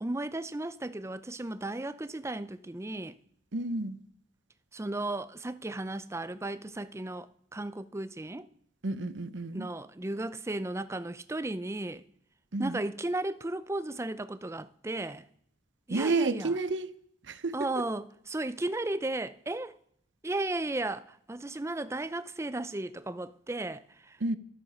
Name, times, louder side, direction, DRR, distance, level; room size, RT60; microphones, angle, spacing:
voice 1, 0.0-3.2 4.7-8.5 9.5-12.0 12.6-15.3 15.9-16.6 17.5-19.8 20.2-24.2, right 2 dB, 15° right, 0.5 m, -35 dB
voice 2, 3.5-4.0 8.8-9.7 12.5-12.8 15.9-16.9 17.3-17.6 24.2-24.4, right 2 dB, 65° right, 0.8 m, -30 dB
13.0 x 12.5 x 5.4 m
head